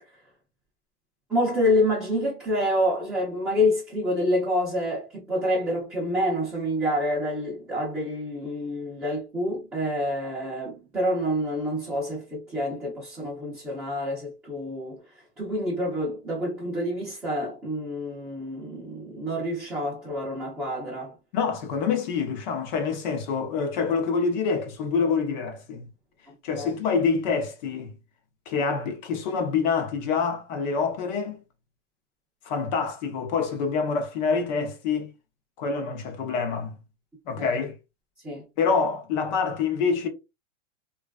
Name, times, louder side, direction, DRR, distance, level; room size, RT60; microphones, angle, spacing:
voice 1, 1.3-15.0 15.4-21.2 26.3-26.7 37.4-37.6 38.2-38.4, left 1 dB, 5° right, 0.5 m, -27 dB
voice 2, 21.3-25.9 26.4-27.9 28.5-31.4 32.4-35.1 35.6-36.8 37.3-37.7 38.6-40.1, left 5 dB, 40° left, 0.6 m, -26 dB
3.2 x 2.3 x 2.2 m
supercardioid pair, 160°, 37 cm